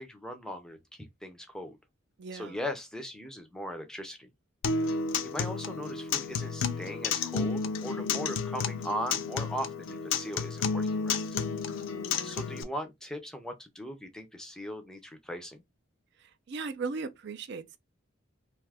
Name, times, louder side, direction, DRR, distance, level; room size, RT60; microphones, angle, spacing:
voice 1, 0.0-1.8 2.3-4.3 4.8-4.9 5.2-11.2 12.2-15.6, equal, 5° left, 0.4 m, -39 dB
voice 2, 2.2-2.6 4.8-5.2 11.6-12.2 16.5-17.8, right 4 dB, 55° right, 0.4 m, -39 dB
Acoustic guitar, 4.6-12.6, left 5 dB, 70° left, 0.4 m, -31 dB
2.6 x 2.4 x 3.3 m
head